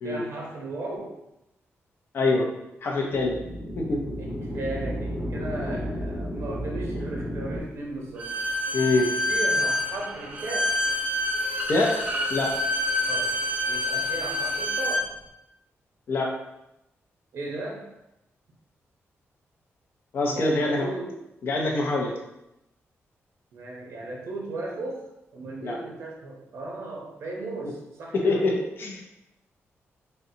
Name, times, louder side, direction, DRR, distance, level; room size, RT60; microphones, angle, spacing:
voice 1, 0.0-1.1 4.1-8.3 9.3-11.0 13.1-13.3 13.7-15.1 17.3-17.8 20.3-21.2 23.5-25.0 25.3-28.5, right 2 dB, 65° right, -1 dB, 0.7 m, -36 dB
voice 2, 2.1-2.5 2.8-3.4 3.8-4.0 8.7-9.1 11.7-12.0 12.3-12.5 16.1-16.3 20.1-20.9 21.4-22.1 25.6-25.8 28.1-28.5 28.8-29.0, left 2 dB, 50° left, 0 dB, 0.6 m, -24 dB
sound 1, 3.0-7.6, equal, ahead, 0.7 m, -32 dB
Bowed string instrument, 8.2-15.1, left 1 dB, 30° right, 0.4 m, -27 dB
3.8 x 2.2 x 2.7 m, 0.89 s
wide cardioid pair, 175°, 5 cm